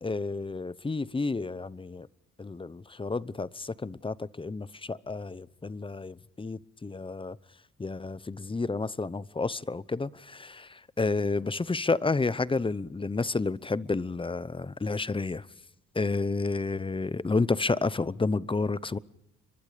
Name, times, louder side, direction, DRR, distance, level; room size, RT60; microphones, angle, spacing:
voice 1, 0.0-2.1 2.4-7.4 7.8-15.5 15.9-19.0, left 3 dB, 15° left, 0.8 m, -30 dB
30.0 x 23.5 x 5.1 m
cardioid pair, 90°, 30 cm